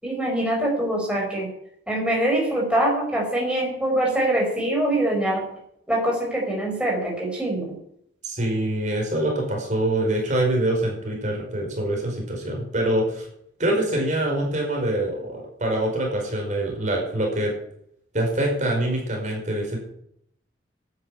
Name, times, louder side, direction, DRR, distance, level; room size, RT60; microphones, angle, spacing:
voice 1, 0.0-1.5 1.9-5.4 5.9-7.7, right 1 dB, 5° right, -2 dB, 5.1 m, -24 dB
voice 2, 8.2-13.3 13.6-17.5 18.1-19.8, right 1 dB, 40° right, 0 dB, 5.2 m, -25 dB
12.5 x 9.8 x 8.6 m, 0.70 s
head